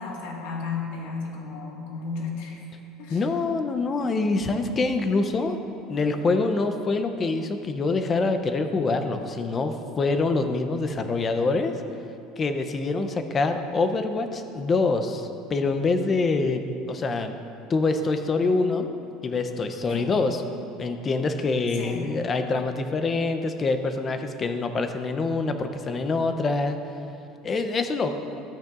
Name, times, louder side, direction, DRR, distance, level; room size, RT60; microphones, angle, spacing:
voice 1, 0.0-2.6 3.0-3.2 19.9-20.2 21.7-22.2, left 4 dB, 75° left, -1 dB, 1.6 m, -34 dB
voice 2, 3.1-5.6 5.9-11.7 12.4-17.4 17.7-18.9 19.2-20.4 20.8-26.8 27.4-28.2, left 3 dB, 20° left, 7 dB, 0.5 m, -25 dB
13.0 x 8.8 x 2.4 m, 2.6 s
cardioid pair, 170°, 0 cm